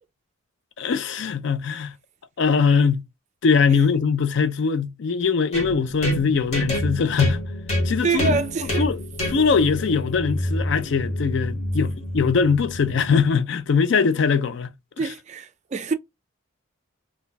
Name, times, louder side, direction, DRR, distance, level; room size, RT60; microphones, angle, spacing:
voice 1, 0.8-1.9 2.4-3.0 3.4-7.4 7.8-8.4 8.8-9.0 9.3-14.7 15.0-15.1, left 5 dB, 55° left, 0.4 m, -21 dB
sound 1, 5.5-13.3, left 1 dB, 30° left, 1.0 m, -28 dB
voice 2, 8.0-8.9 15.0-15.9, right 4 dB, 35° right, 0.3 m, -25 dB
2.2 x 2.2 x 3.9 m
head